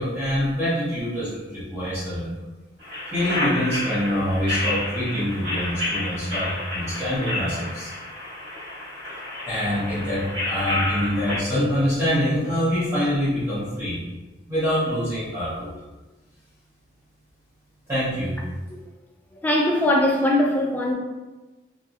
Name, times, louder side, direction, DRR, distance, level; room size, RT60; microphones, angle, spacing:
voice 1, 0.0-2.4 3.1-7.9 9.4-14.0 14.5-15.7 17.9-18.4, equal, 15° right, -13 dB, 0.8 m, -25 dB
sound 1, 2.8-11.4, left 1 dB, 90° right, 1.1 m, -30 dB
voice 2, 19.3-20.9, left 1 dB, 10° left, -2 dB, 0.4 m, -21 dB
4.1 x 2.0 x 2.4 m, 1.1 s
head